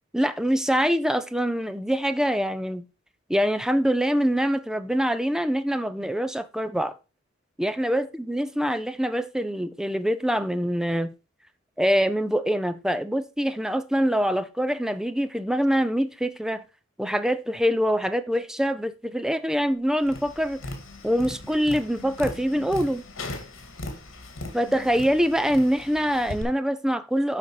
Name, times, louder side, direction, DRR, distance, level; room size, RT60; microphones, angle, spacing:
voice 1, 0.1-2.9 3.3-7.0 7.6-11.1 11.8-16.6 17.0-20.6 21.0-23.0 24.5-27.4, equal, 5° right, 0.6 m, -24 dB
Tap, 20.0-26.4, left 2 dB, 75° left, 2.3 m, -38 dB
12.0 x 4.3 x 4.8 m
head